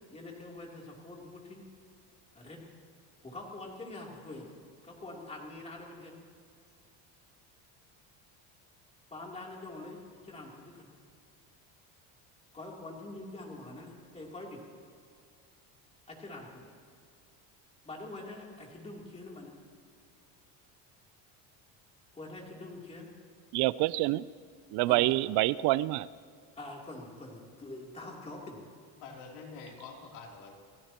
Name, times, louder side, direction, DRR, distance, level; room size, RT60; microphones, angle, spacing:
voice 1, 0.1-1.6 2.3-2.6 3.2-4.5 4.8-6.1 9.1-10.9 12.5-14.6 16.1-16.7 17.8-19.5 22.1-23.1 24.9-25.2 26.6-28.6, left 2 dB, 15° left, -2 dB, 3.1 m, -45 dB
voice 2, 23.5-24.2 24.7-26.1, right 18 dB, 65° right, 18 dB, 0.5 m, -26 dB
voice 3, 29.0-30.6, left 4 dB, 75° left, 0 dB, 3.3 m, -46 dB
29.0 x 15.5 x 3.0 m, 2.2 s
cardioid pair, 145°, 42 cm